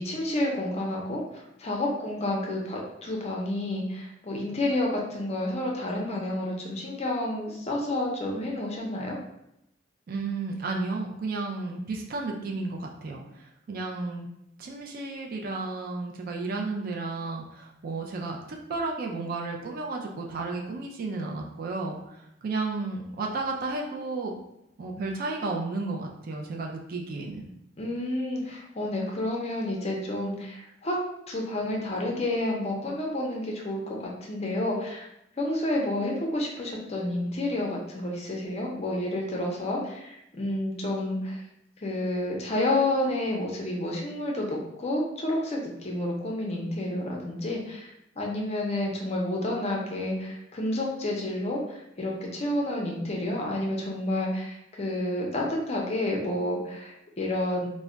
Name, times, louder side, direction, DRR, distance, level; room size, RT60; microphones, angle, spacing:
voice 1, 0.0-9.2 27.8-31.0 31.3-35.1 35.4-41.4 41.8-47.9 48.2-57.7, left 1 dB, 35° left, -1 dB, 0.5 m, -30 dB
voice 2, 10.1-14.3 14.6-24.3 24.8-27.4, right 3 dB, 50° right, 0 dB, 0.3 m, -33 dB
2.2 x 2.1 x 3.7 m, 0.81 s
head